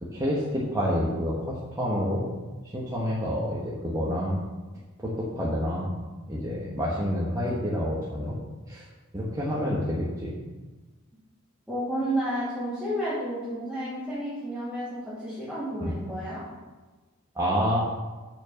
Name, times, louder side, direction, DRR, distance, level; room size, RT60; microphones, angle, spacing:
voice 1, 0.0-2.3 2.7-4.4 5.0-6.0 6.3-8.4 8.7-8.8 9.1-10.4 15.8-15.9 17.3-17.8, equal, 15° right, -7 dB, 1.3 m, -28 dB
voice 2, 11.7-16.4, right 1 dB, ahead, -13 dB, 3.0 m, -31 dB
7.1 x 5.9 x 6.4 m, 1.2 s
head